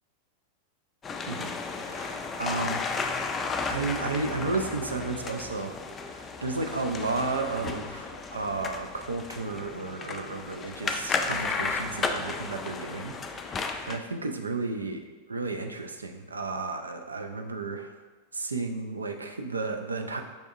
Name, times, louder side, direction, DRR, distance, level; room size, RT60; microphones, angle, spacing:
sound 1, 1.0-14.0, left 4 dB, 20° left, 0.3 m, -33 dB
voice 1, 1.8-2.8 3.7-15.0 15.3-18.0 18.3-20.2, right 3 dB, 75° right, 5 dB, 0.4 m, -33 dB
5.4 x 3.4 x 2.4 m, 1.3 s
figure-of-eight pair, 90°, 0 cm